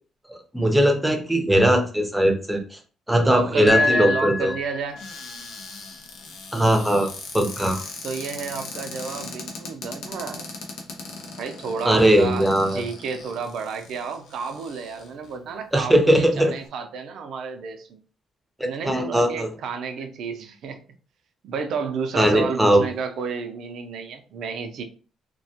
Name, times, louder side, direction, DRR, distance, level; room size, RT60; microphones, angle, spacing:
voice 1, 0.3-2.8 3.1-4.5 6.5-7.1 7.3-7.8 11.8-12.8 15.7-16.5 18.6-19.5 22.2-22.8, right 1 dB, 5° right, 4 dB, 0.6 m, -19 dB
voice 2, 3.2-5.0 8.0-10.4 11.4-18.0 18.6-20.8 21.4-24.8, right 5 dB, 75° right, 7 dB, 0.4 m, -31 dB
sound 1, 3.7-5.2, left 3 dB, 30° left, 0.9 m, -25 dB
Cupboard open or close, 4.9-15.3 16.0-16.1 16.3-16.7, left 3 dB, 90° left, 0.5 m, -39 dB
2.3 x 2.1 x 2.7 m, 0.38 s
cardioid pair, 90°, 0 cm